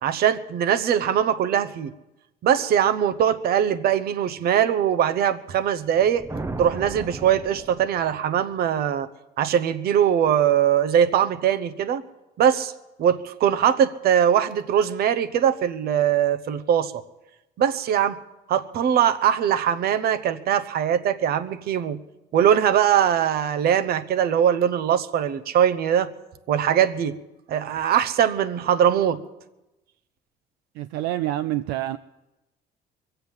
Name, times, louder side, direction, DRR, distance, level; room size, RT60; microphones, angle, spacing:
voice 1, 0.0-1.9 2.4-6.2 6.6-9.1 9.4-12.0 12.4-12.7 13.0-16.9 17.6-18.2 18.5-22.0 22.3-26.1 26.5-27.1 27.5-29.2, right 9 dB, 65° right, 11 dB, 0.9 m, -21 dB
sound 1, 5.9-8.4, right 3 dB, 15° right, 0.7 m, -36 dB
voice 2, 30.7-32.0, right 14 dB, 85° right, 11 dB, 0.4 m, -27 dB
23.0 x 7.9 x 7.1 m, 1.0 s
cardioid pair, 110°, 17 cm